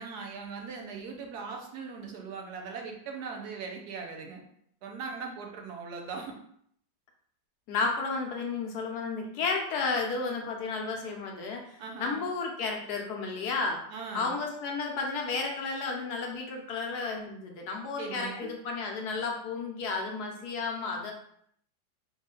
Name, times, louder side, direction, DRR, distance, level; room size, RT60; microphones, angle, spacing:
voice 1, 0.0-4.4 4.8-6.3 11.8-12.2 13.9-14.4 18.0-18.5, right 5 dB, 65° right, 1 dB, 1.0 m, -40 dB
voice 2, 7.7-13.8 14.1-21.1, left 4 dB, 70° left, 1 dB, 1.0 m, -32 dB
4.0 x 2.4 x 3.7 m, 0.68 s
omnidirectional pair, 2.2 m